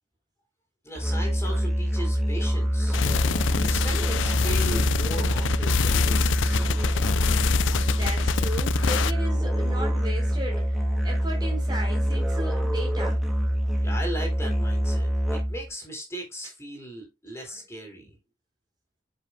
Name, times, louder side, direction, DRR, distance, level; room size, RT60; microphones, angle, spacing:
voice 1, 0.8-3.0 3.6-6.9 13.8-18.1, right 1 dB, 15° left, 4.1 m, -37 dB
Musical instrument, 0.9-15.7, equal, ahead, 2.1 m, -25 dB
sound 1, 2.9-9.1, left 7 dB, 75° left, 0.4 m, -27 dB
voice 2, 7.9-10.7 11.0-13.2 17.5-17.6, right 1 dB, 25° right, 3.5 m, -36 dB
8.6 x 7.5 x 2.3 m
head